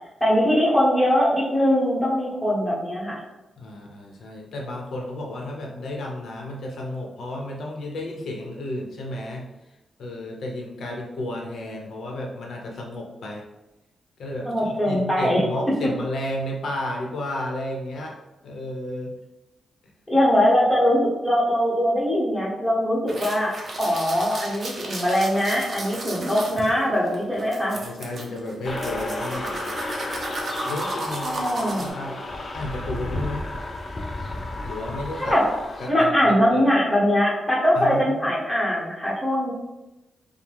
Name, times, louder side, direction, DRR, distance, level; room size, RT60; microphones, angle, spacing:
voice 1, 0.2-3.2 14.5-15.4 20.1-27.8 31.2-31.9 35.2-35.4 35.9-39.5, equal, 5° left, -7 dB, 1.3 m, -21 dB
voice 2, 3.6-9.5 10.0-13.4 14.2-18.2 18.4-19.2 27.8-29.7 30.6-31.4 31.8-33.5 34.6-35.4 35.8-36.7 37.7-38.4, left 1 dB, 70° left, 0 dB, 0.9 m, -32 dB
sound 1, 23.1-31.9, right 2 dB, 40° right, 0.7 m, -34 dB
sound 2, 28.6-35.9, left 2 dB, 30° left, 0.5 m, -32 dB
5.0 x 2.2 x 3.5 m, 1.0 s
wide cardioid pair, 145°, 0 cm